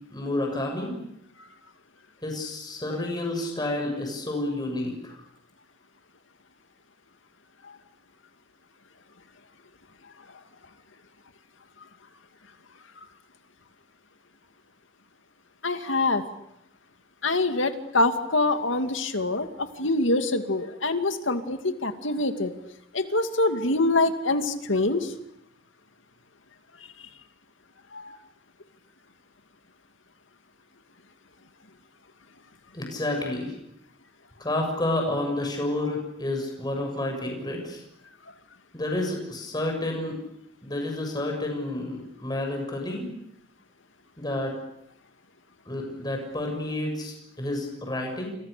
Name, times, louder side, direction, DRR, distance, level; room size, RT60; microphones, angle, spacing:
voice 1, 0.1-1.0 2.2-5.2 32.7-33.6 34.4-37.8 38.7-40.2 40.6-43.1 44.2-44.6 45.7-48.4, left 1 dB, 20° left, 2 dB, 7.3 m, -30 dB
voice 2, 15.6-16.2 17.2-22.5 22.9-25.1 27.9-28.2, left 2 dB, 85° left, 7 dB, 2.4 m, -25 dB
29.5 x 28.5 x 6.9 m, 0.79 s
head